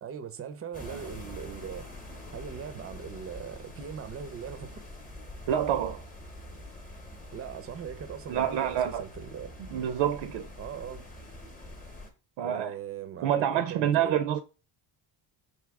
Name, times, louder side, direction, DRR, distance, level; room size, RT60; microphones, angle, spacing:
voice 1, 0.0-1.9 2.3-4.8 7.3-9.5 10.6-11.0 12.4-14.2, right 8 dB, 30° right, 0.5 m, -40 dB
sound 1, 0.7-12.1, left 1 dB, 20° left, 0.8 m, -45 dB
voice 2, 5.5-6.0 8.3-9.0 9.7-10.5 12.4-12.7 13.2-14.4, right 10 dB, 75° right, 0.5 m, -27 dB
3.4 x 2.7 x 4.6 m
cardioid pair, 130°, 47 cm